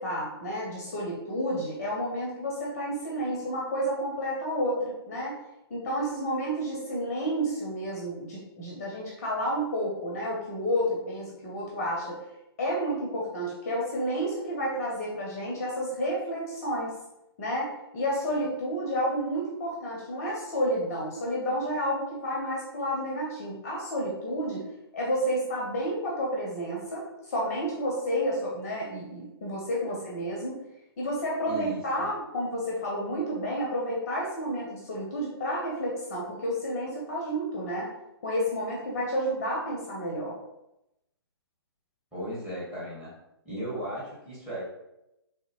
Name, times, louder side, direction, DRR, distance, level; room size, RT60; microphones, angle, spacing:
voice 1, 0.0-5.4 5.7-12.2 12.6-16.9 17.4-24.6 24.9-30.6 31.0-37.9 38.2-40.3, equal, 35° left, -3 dB, 0.7 m, -30 dB
voice 2, 31.5-32.1 42.1-43.1 43.4-44.6, equal, 5° right, -9 dB, 1.3 m, -36 dB
3.4 x 2.7 x 3.0 m, 0.89 s
figure-of-eight pair, 130°, 14 cm